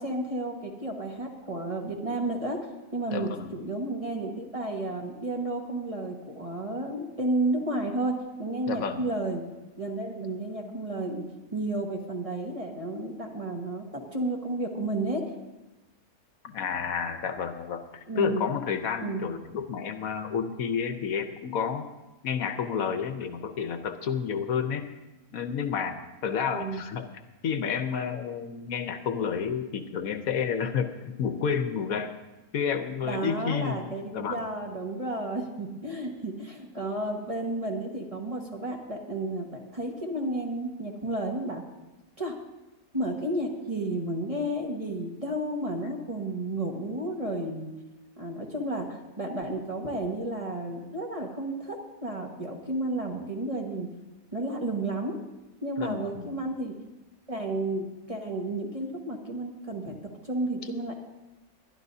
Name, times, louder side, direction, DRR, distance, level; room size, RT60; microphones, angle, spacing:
voice 1, 0.0-2.6 2.9-9.4 9.8-11.2 11.5-13.8 14.1-15.2 18.1-18.5 19.0-19.3 26.5-26.8 33.0-41.6 42.2-42.3 42.9-47.7 48.2-53.9 54.3-55.1 55.6-56.8 57.3-61.1, right 2 dB, 25° right, 0 dB, 1.4 m, -32 dB
voice 2, 3.1-3.6 8.7-9.0 16.4-21.9 22.2-24.9 25.3-27.1 27.4-32.1 32.5-34.4 55.8-56.3, left 7 dB, 70° left, 8 dB, 1.2 m, -30 dB
21.5 x 11.5 x 2.7 m, 1.1 s
omnidirectional pair, 1.6 m